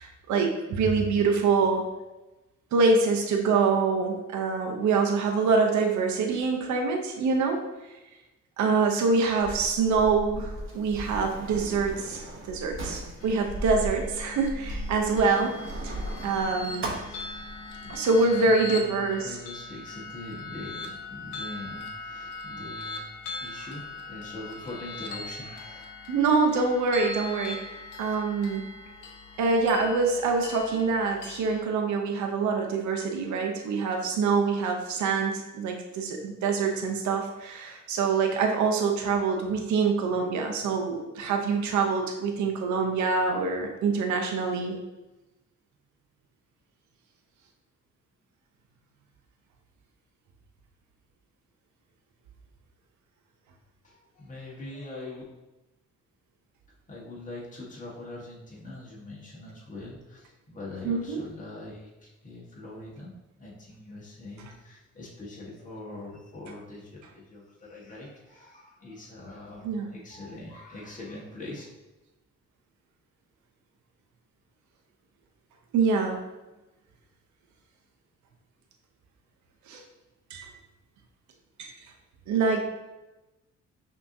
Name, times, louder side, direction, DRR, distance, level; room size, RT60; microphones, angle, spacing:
voice 1, 0.0-1.8 2.7-7.6 8.6-15.6 15.8-16.0 16.2-16.9 17.9-19.4 26.1-28.6 29.4-44.8 60.8-61.2 69.6-69.9 75.7-76.2 79.7-79.8 80.3-80.5 81.6-81.7 82.3-82.6, right 4 dB, 70° right, 2 dB, 0.7 m, -25 dB
Sliding door, 9.4-18.0, right 1 dB, 40° right, 0.9 m, -37 dB
sound 1, 13.2-31.6, left 3 dB, 90° left, 0.7 m, -41 dB
voice 2, 17.3-23.1 23.4-25.8 53.8-55.2 56.9-63.1 63.4-71.7, left 2 dB, 25° left, -5 dB, 1.3 m, -43 dB
5.7 x 2.9 x 2.6 m, 1.0 s
cardioid pair, 90°, 30 cm